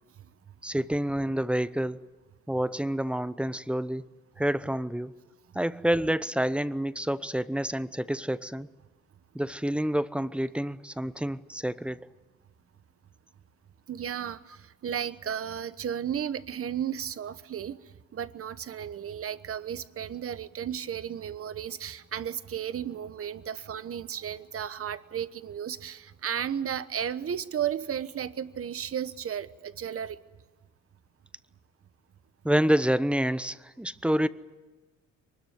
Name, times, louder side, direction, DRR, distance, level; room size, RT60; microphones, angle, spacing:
voice 1, 0.6-2.0 2.5-4.0 4.4-5.2 5.5-8.7 9.3-12.0 32.4-34.3, equal, 5° right, 15 dB, 0.8 m, -28 dB
voice 2, 13.9-17.8 18.1-30.2, right 9 dB, 50° right, 13 dB, 1.1 m, -34 dB
23.5 x 20.5 x 9.4 m, 1.3 s
cardioid pair, 90°, 30 cm